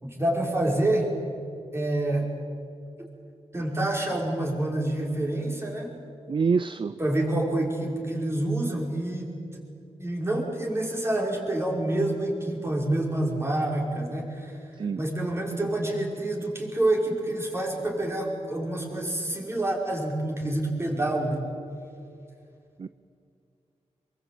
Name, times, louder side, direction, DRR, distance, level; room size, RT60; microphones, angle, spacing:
voice 1, 0.0-1.1 1.7-2.3 3.0-3.1 3.5-5.9 7.0-9.7 10.0-14.6 15.0-21.4, right 1 dB, 20° right, -1 dB, 5.9 m, -27 dB
voice 2, 6.3-6.9 14.8-15.0 22.8-22.9, right 5 dB, 45° right, 14 dB, 0.5 m, -25 dB
26.0 x 22.5 x 9.0 m, 2.5 s
wide cardioid pair, 95°, 12 cm